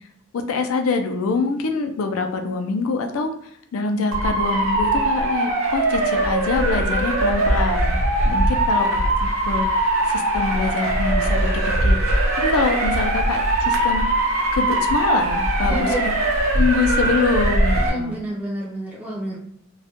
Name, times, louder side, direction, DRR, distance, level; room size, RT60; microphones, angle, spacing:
voice 1, 0.3-3.3 3.7-8.0 8.2-12.0 12.4-14.1 14.5-16.1 16.5-18.2, left 4 dB, 85° left, 5 dB, 0.4 m, -25 dB
Motor vehicle (road) / Siren, 4.1-17.9, right 1 dB, 75° right, 0.7 m, -21 dB
voice 2, 15.6-16.0 17.8-19.4, equal, 5° right, -6 dB, 0.3 m, -28 dB
2.3 x 2.1 x 2.8 m, 0.73 s
head